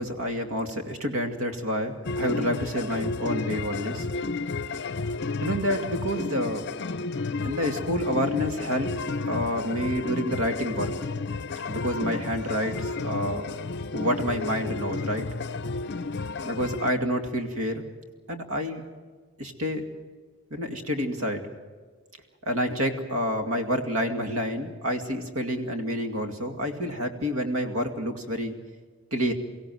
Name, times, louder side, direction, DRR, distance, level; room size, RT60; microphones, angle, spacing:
voice 1, 0.0-4.1 5.4-6.7 7.4-8.9 9.2-10.9 11.7-13.5 13.9-15.3 16.4-17.8 18.3-18.8 19.4-19.8 20.5-21.5 22.4-28.5 29.1-29.3, equal, 85° right, 6 dB, 2.5 m, -28 dB
sound 1, 2.0-16.9, left 3 dB, 55° left, 0.6 m, -32 dB
23.5 x 16.5 x 7.8 m, 1.5 s
head